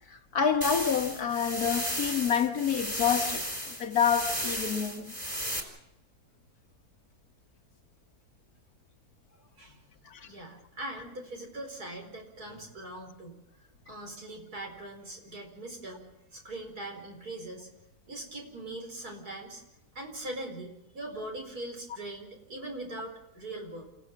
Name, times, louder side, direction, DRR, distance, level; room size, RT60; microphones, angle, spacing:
voice 1, 0.1-5.1 10.1-10.2, left 7 dB, 65° left, 1.7 m, -28 dB
sound 1, 0.6-5.6, equal, 10° right, 3.9 m, -34 dB
voice 2, 10.2-13.4 13.9-16.0 16.3-17.7 18.1-19.6 20.0-23.8, right 1 dB, 65° right, 5.3 m, -41 dB
28.5 x 16.0 x 7.4 m
omnidirectional pair, 1.8 m